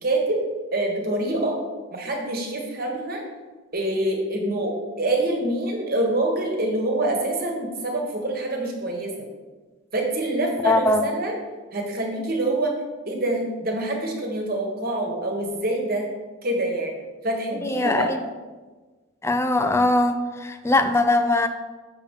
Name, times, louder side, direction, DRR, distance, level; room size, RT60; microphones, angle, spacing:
voice 1, 0.0-0.4 0.7-1.6 1.9-3.2 3.7-9.1 9.9-11.3 11.7-12.7 13.1-16.1 16.4-16.9 17.2-18.1, right 1 dB, 45° right, 1 dB, 1.4 m, -25 dB
voice 2, 10.6-11.0 17.6-18.2 19.2-21.5, left 2 dB, 15° left, 9 dB, 0.4 m, -21 dB
7.0 x 6.8 x 3.7 m, 1.3 s
head